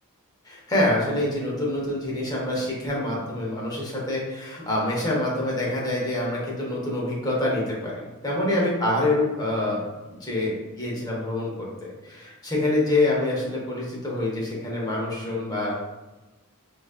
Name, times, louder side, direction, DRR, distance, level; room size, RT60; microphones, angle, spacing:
voice 1, 0.4-9.8 10.1-11.7 12.0-15.7, left 1 dB, 20° left, -4 dB, 0.8 m, -26 dB
4.0 x 2.5 x 2.4 m, 1.1 s
head